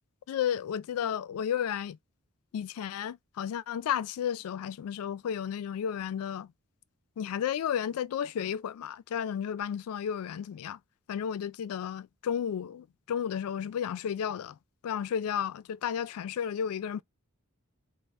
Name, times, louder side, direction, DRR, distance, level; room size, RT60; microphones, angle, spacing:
voice 1, 0.3-2.0 2.5-6.5 7.2-10.8 11.1-14.6 14.8-17.0, left 8 dB, 80° left, 0.3 m, -33 dB
4.1 x 2.0 x 3.3 m
head